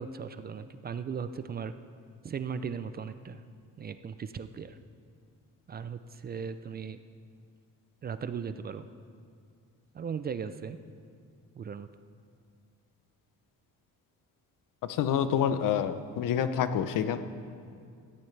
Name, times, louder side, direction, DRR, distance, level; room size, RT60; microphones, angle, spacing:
voice 1, 0.0-1.7 2.2-3.4 3.8-4.8 5.7-7.0 8.0-8.9 9.9-10.8 11.6-11.9, right 6 dB, 30° right, 11 dB, 0.4 m, -37 dB
voice 2, 14.9-17.2, left 8 dB, 75° left, 11 dB, 0.7 m, -27 dB
16.5 x 14.0 x 3.3 m, 2.3 s
cardioid pair, 135°, 33 cm